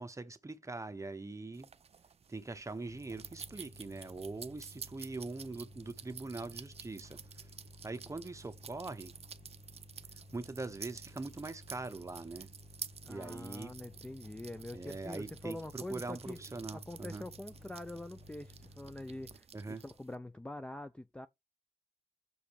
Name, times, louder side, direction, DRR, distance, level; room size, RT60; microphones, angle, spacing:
voice 1, 0.0-1.7 2.3-7.5 7.8-9.1 10.3-12.5 13.1-13.7 14.7-17.3 19.5-19.8, right 3 dB, 25° right, 0.9 m, -42 dB
sound 1, 1.5-20.2, right 6 dB, 50° right, 0.5 m, -51 dB
sound 2, 2.8-19.4, left 1 dB, 65° left, 1.9 m, -56 dB
voice 2, 13.0-16.4 16.7-21.3, left 1 dB, 10° left, 0.4 m, -45 dB
6.3 x 4.9 x 6.9 m
wide cardioid pair, 165°, 14 cm